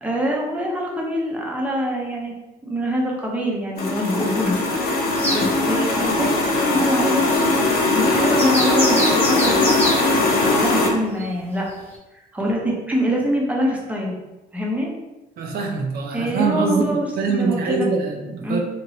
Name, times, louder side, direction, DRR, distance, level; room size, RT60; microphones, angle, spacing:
voice 1, 0.0-2.3 2.6-7.5 7.9-9.7 10.2-11.6 12.3-14.1 14.5-14.9 16.1-17.9 18.4-18.6, equal, 10° right, -2 dB, 0.7 m, -24 dB
sound 1, 3.8-10.9, left 2 dB, 65° left, 0.7 m, -20 dB
sound 2, 5.2-5.4 8.4-10.0 11.2-11.3 11.9-12.0, equal, 10° left, 1.0 m, -24 dB
voice 2, 15.4-16.8 17.2-18.6, right 4 dB, 65° right, 2 dB, 0.5 m, -23 dB
2.8 x 2.6 x 3.0 m, 1.0 s
cardioid pair, 110°, 17 cm